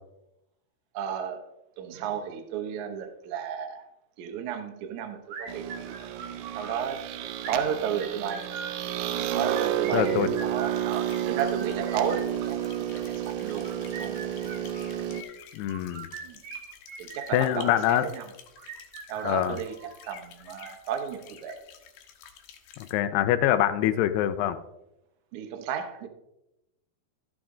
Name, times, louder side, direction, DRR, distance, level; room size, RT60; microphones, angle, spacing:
voice 1, 0.9-1.5 1.8-3.9 4.2-5.9 6.5-7.1 7.5-8.5 9.3-13.7 14.0-14.5 16.2-16.4 17.0-18.3 19.1-19.8 20.1-21.6 25.3-26.1, right 8 dB, 70° right, 5 dB, 1.8 m, -33 dB
sound 1, 5.3-6.8 7.4-8.8 9.3-10.9 11.4-12.9 13.5-15.0 15.7-18.0 18.6-20.0, right 5 dB, 55° right, 2.1 m, -42 dB
sound 2, 5.5-15.2, right 11 dB, 90° right, 2.0 m, -31 dB
voice 2, 9.9-10.3 15.5-16.1 17.3-18.1 19.2-19.6 22.8-24.6, left 12 dB, 85° left, 12 dB, 2.6 m, -24 dB
sound 3, 10.9-22.9, left 8 dB, 70° left, 2.5 m, -51 dB
13.5 x 7.3 x 3.7 m, 0.88 s
omnidirectional pair, 4.8 m